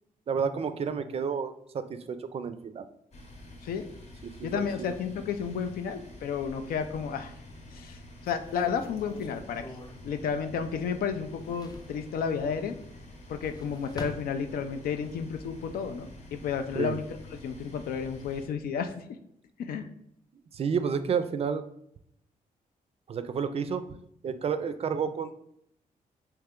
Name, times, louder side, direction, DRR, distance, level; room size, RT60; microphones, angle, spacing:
voice 1, 0.3-2.9 4.2-4.9 16.7-17.0 20.5-21.6 23.1-23.9 24.2-25.3, right 6 dB, 40° right, 11 dB, 0.4 m, -30 dB
sound 1, 3.1-18.5, left 1 dB, 50° left, 0.9 m, -48 dB
voice 2, 4.4-7.3 7.7-9.6 10.0-12.8 13.3-17.0 17.3-19.0 19.6-19.9, left 6 dB, 80° left, 8 dB, 0.4 m, -32 dB
sound 2, 6.3-7.3 7.8-7.9 8.2-10.9 11.2-12.0 13.1-14.9 15.3-16.0, left 1 dB, 25° left, 0.5 m, -44 dB
3.2 x 2.9 x 3.6 m, 0.73 s
cardioid pair, 95°, 15 cm